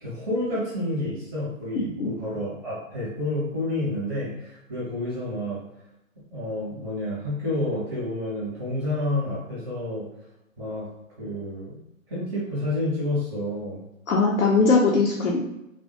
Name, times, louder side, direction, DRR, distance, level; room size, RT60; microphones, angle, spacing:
voice 1, 0.0-5.6 6.3-10.0 10.6-10.9 11.2-11.8 12.1-13.8, left 1 dB, 5° right, -8 dB, 0.5 m, -29 dB
voice 2, 1.8-2.1 14.1-15.5, left 4 dB, 85° left, -2 dB, 0.7 m, -21 dB
3.3 x 2.0 x 2.6 m, 0.87 s
hypercardioid pair, 140°, 40 cm